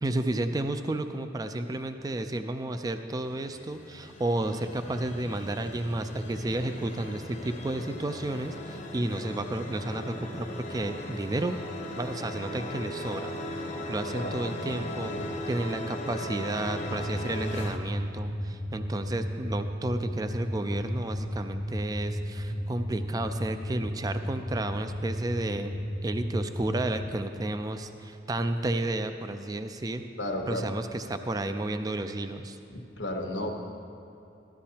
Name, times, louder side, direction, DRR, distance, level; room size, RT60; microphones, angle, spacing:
voice 1, 0.0-11.6 11.9-13.3 13.9-15.1 15.5-25.7 26.0-30.1 30.5-32.6, right 2 dB, 20° right, 8 dB, 0.3 m, -32 dB
sound 1, 3.2-17.8, left 1 dB, 40° left, 0.8 m, -38 dB
sound 2, 16.6-27.1, equal, 70° right, 1.8 m, -34 dB
voice 2, 30.2-30.7 32.7-33.6, left 1 dB, 80° left, 2 dB, 1.0 m, -33 dB
14.0 x 11.5 x 2.8 m, 2.8 s
head